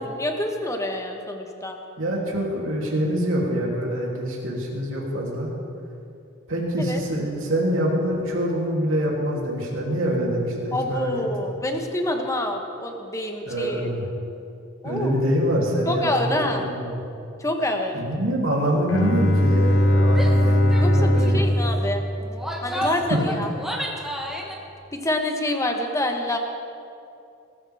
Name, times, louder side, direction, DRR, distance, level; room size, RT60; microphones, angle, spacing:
voice 1, 0.0-1.8 6.8-7.0 10.7-13.8 14.8-15.2 15.9-16.7 17.4-18.0 20.8-22.0 22.6-23.5 24.9-26.4, left 1 dB, 15° left, 3 dB, 1.2 m, -27 dB
voice 2, 2.0-5.5 6.5-11.1 11.4-11.5 13.5-14.1 14.8-17.0 17.9-21.4 23.1-23.2, equal, 70° right, -3 dB, 3.1 m, -25 dB
Bowed string instrument, 18.9-22.8, left 1 dB, 65° left, 1.0 m, -20 dB
Female speech woman speaking / Yell, 20.1-20.4 20.7-20.9 21.2-21.5 22.2-24.6, equal, ahead, 1.3 m, -31 dB
21.5 x 13.5 x 3.6 m, 2.6 s
head